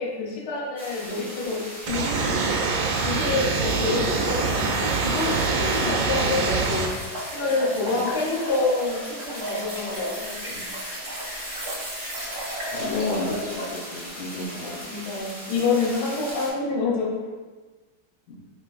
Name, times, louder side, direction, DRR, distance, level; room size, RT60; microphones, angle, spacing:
voice 1, 0.0-2.6 3.0-10.6 12.8-13.0 14.6-17.1, left 3 dB, 55° left, -3 dB, 1.3 m, -28 dB
sound 1, 0.8-16.5, equal, ahead, 0.9 m, -39 dB
sound 2, 1.9-6.9, right 4 dB, 85° right, 1.4 m, -24 dB
sound 3, 2.9-13.8, right 1 dB, 30° right, 1.1 m, -35 dB
voice 2, 12.7-14.9 18.3-18.4, left 3 dB, 80° left, -1 dB, 1.5 m, -32 dB
4.4 x 3.6 x 2.5 m, 1.3 s
omnidirectional pair, 2.2 m